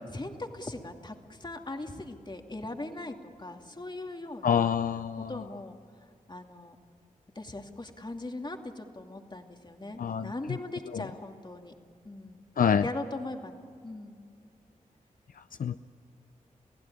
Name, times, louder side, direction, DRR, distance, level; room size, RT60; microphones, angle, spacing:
voice 1, 0.1-4.7 5.3-5.8 6.3-6.8 7.3-11.7 12.0-12.4 12.8-14.2, left 2 dB, 30° left, 4 dB, 2.5 m, -40 dB
voice 2, 4.4-5.4 10.0-10.3 10.9-11.0 12.6-12.8 15.6-15.8, left 7 dB, 70° left, 11 dB, 0.5 m, -26 dB
30.0 x 16.0 x 9.8 m, 2.4 s
cardioid pair, 50°, 15 cm